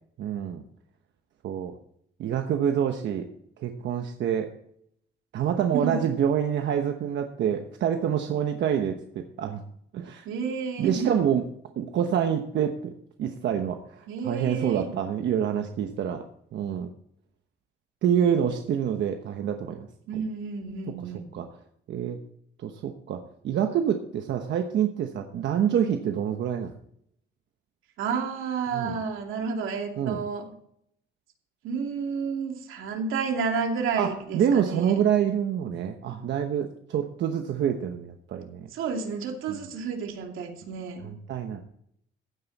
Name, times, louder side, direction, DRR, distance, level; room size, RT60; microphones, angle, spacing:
voice 1, 0.2-0.6 1.4-1.7 2.2-3.3 3.6-4.5 5.3-9.6 9.9-10.3 10.8-11.4 11.8-12.9 13.2-16.2 16.5-16.9 18.0-19.9 21.3-21.5 21.9-22.2 22.6-26.7 28.7-29.0 30.0-30.2 34.0-38.7 39.5-39.6 41.0-41.6, right 9 dB, 65° right, 5 dB, 1.1 m, -27 dB
voice 2, 10.2-11.2 14.1-14.9 20.1-21.3 28.0-30.5 31.6-35.0 38.7-41.1, right 5 dB, 85° right, 3 dB, 2.7 m, -31 dB
15.0 x 9.5 x 4.2 m, 0.70 s
cardioid pair, 170°, 20 cm